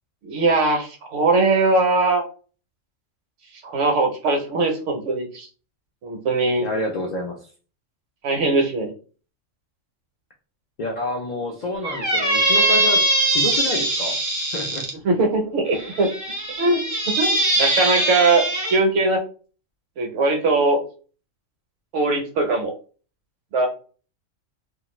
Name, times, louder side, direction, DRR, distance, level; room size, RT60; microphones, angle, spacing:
voice 1, 0.2-2.2 3.6-5.5 6.0-6.7 8.2-8.9 15.0-16.1 16.6-16.8 17.2-18.4 18.7-19.2 20.0-20.8 21.9-22.7 23.5-23.7, right 3 dB, 70° right, 4 dB, 1.0 m, -20 dB
voice 2, 6.6-7.5 10.8-14.2 14.5-14.9, left 2 dB, 65° left, 1 dB, 0.4 m, -28 dB
Squeak, 11.8-14.9 15.7-18.8, right 2 dB, 25° right, 0.4 m, -21 dB
2.5 x 2.4 x 3.0 m, 0.39 s
omnidirectional pair, 1.3 m